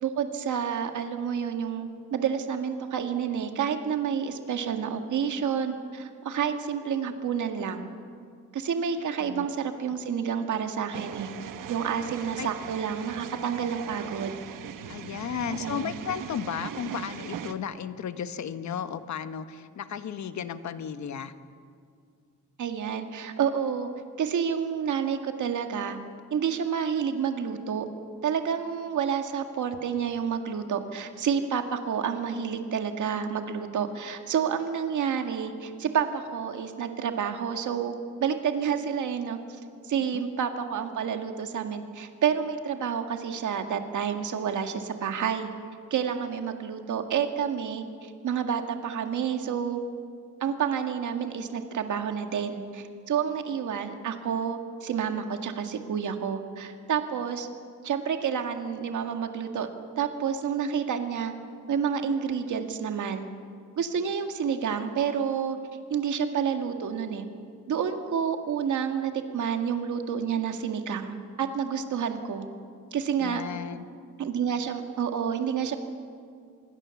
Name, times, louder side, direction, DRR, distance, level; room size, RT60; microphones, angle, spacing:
voice 1, 0.0-7.9 8.5-11.3 11.7-14.3 15.5-15.9 22.6-23.9 24.2-26.0 26.3-27.9 28.2-37.9 38.2-39.4 39.9-45.5 45.9-49.8 50.4-57.5 57.8-59.7 60.0-61.3 61.7-63.3 63.8-65.6 65.9-67.3 67.7-72.5 72.9-73.4 74.2-75.8, right 7 dB, 70° right, 6 dB, 1.9 m, -29 dB
sound 1, 10.9-17.5, right 8 dB, 90° right, 1.2 m, -39 dB
voice 2, 14.9-21.3 40.1-40.2 73.2-73.9, left 8 dB, 60° left, 11 dB, 1.2 m, -34 dB
25.5 x 22.0 x 7.1 m, 2.2 s
wide cardioid pair, 160°, 31 cm